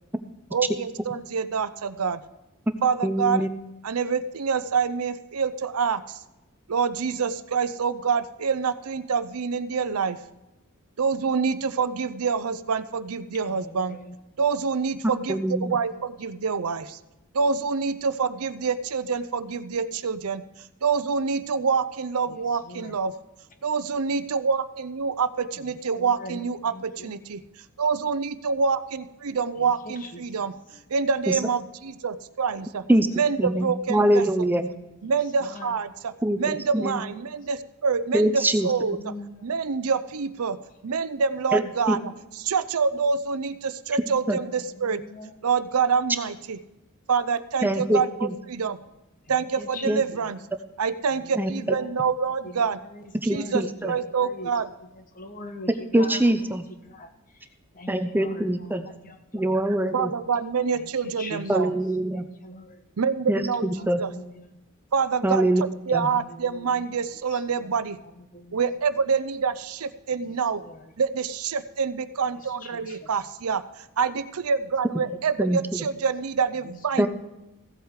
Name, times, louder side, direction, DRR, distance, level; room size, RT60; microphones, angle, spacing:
voice 1, 0.5-2.2 2.8-3.5 3.8-6.2 6.7-10.2 11.0-14.0 14.4-17.0 17.3-20.4 20.8-23.1 23.6-27.4 27.8-30.5 30.9-32.8 33.1-34.3 35.0-39.1 39.4-40.6 40.8-45.0 45.4-46.6 47.1-48.8 49.3-50.4 50.8-52.8 53.2-54.7 59.7-61.7 63.0-64.1 64.9-68.0 68.5-70.6 71.0-73.6 74.0-77.1, right 5 dB, 80° right, 13 dB, 0.6 m, -26 dB
voice 2, 3.0-3.5 15.3-15.7 31.3-31.4 32.9-33.1 33.4-34.7 36.2-37.0 38.1-38.7 41.5-41.6 41.9-42.0 44.3-44.4 47.6-48.3 49.9-50.0 51.4-51.5 53.2-53.9 55.9-56.6 57.9-58.9 59.3-60.1 61.5-62.3 63.3-64.0 65.2-65.6 65.9-66.1 75.4-75.8 77.0-77.1, right 1 dB, 10° right, 9 dB, 0.6 m, -23 dB
voice 3, 13.8-14.1 22.7-22.9 26.0-26.4 26.7-27.1 29.3-29.4 35.5-35.7 39.0-39.3 44.8-45.3 49.6-50.3 53.3-53.6 54.2-54.5 55.2-56.2 56.9-57.1 57.8-58.4 58.7-58.8 59.0-59.5 61.2-61.4 62.1-62.8 63.8-64.5 66.4-66.5 68.3-68.6 72.7-73.1, left 2 dB, 40° left, 6 dB, 1.2 m, -41 dB
15.5 x 8.1 x 4.8 m, 0.99 s
head